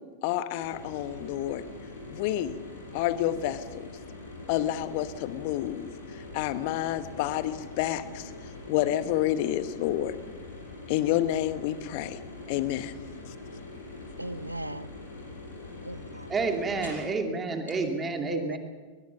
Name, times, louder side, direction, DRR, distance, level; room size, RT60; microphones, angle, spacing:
voice 1, 0.2-1.6 2.1-2.6 2.9-3.8 4.5-5.9 6.1-8.3 8.7-10.2 10.9-12.2 12.5-12.9, left 13 dB, 45° left, 1.1 m, -29 dB
sound 1, 0.6-17.1 17.7-17.8, left 2 dB, 70° left, 6.2 m, -43 dB
voice 2, 14.2-14.9 15.8-16.3 18.2-18.6, right 1 dB, 85° right, 0.6 m, -37 dB
voice 3, 16.3-18.6, right 4 dB, 20° right, 2.7 m, -29 dB
23.0 x 19.0 x 6.0 m
figure-of-eight pair, 90°, 0 cm